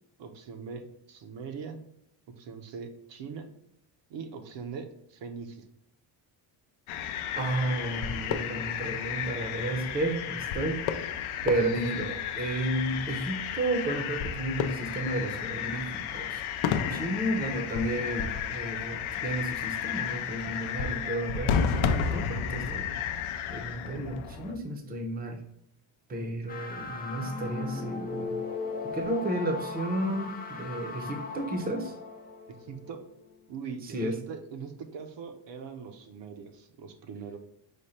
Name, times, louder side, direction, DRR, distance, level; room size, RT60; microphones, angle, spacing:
voice 1, 0.2-1.8 2.3-3.5 4.1-5.7 16.9-17.0 32.6-33.0 33.5-37.4, right 5 dB, 65° right, 5 dB, 0.7 m, -41 dB
sound 1, 6.9-24.6, left 8 dB, 80° left, 0.6 m, -32 dB
voice 2, 7.4-10.8 11.4-16.4 16.9-22.9 23.5-25.4 26.1-28.3 28.8-32.0 33.8-34.2, right 1 dB, 20° right, 4 dB, 0.6 m, -32 dB
sound 2, 26.5-33.3, left 4 dB, 20° left, 0.3 m, -38 dB
5.0 x 2.1 x 4.1 m, 0.75 s
cardioid pair, 135°, 47 cm